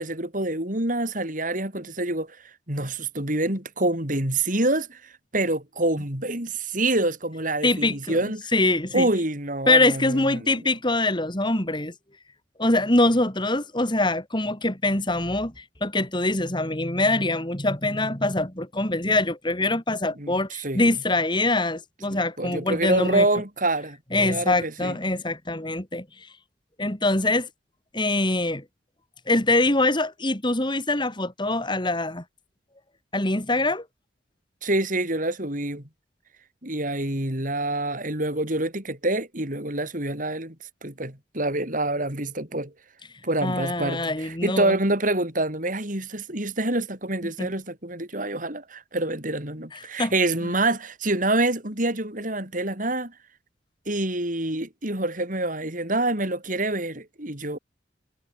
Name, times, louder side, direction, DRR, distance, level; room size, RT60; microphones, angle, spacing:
voice 1, 0.0-8.5 8.9-10.6 20.2-20.9 22.1-25.0 34.6-35.8 36.6-40.6 40.8-42.7 43.2-53.1 53.9-57.6, right 2 dB, 45° right, 6.0 m, -26 dB
voice 2, 7.6-8.2 8.5-9.1 9.7-11.9 12.6-23.3 24.1-26.1 26.8-27.5 27.9-28.6 29.3-32.2 33.1-33.9 43.4-44.8 47.4-47.5 49.7-50.1, left 2 dB, 25° left, 3.6 m, -24 dB
head